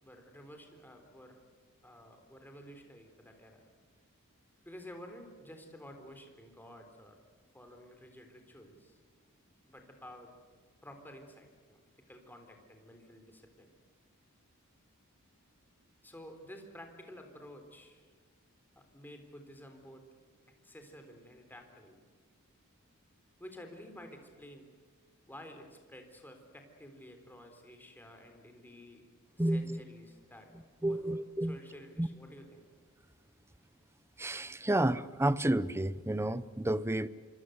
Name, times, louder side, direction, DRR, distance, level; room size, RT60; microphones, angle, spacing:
voice 1, 0.0-1.4 1.8-3.7 4.6-7.2 7.5-9.0 9.6-10.3 10.8-11.8 12.1-13.7 16.0-18.0 18.8-20.1 20.6-22.0 23.4-24.7 25.3-29.0 29.4-30.5 30.8-32.6, equal, 10° left, 3.8 m, -52 dB
voice 2, 29.4-29.8 30.8-31.6 32.0-32.1 34.2-37.1, right 1 dB, 10° right, 0.7 m, -30 dB
26.0 x 25.0 x 8.0 m
head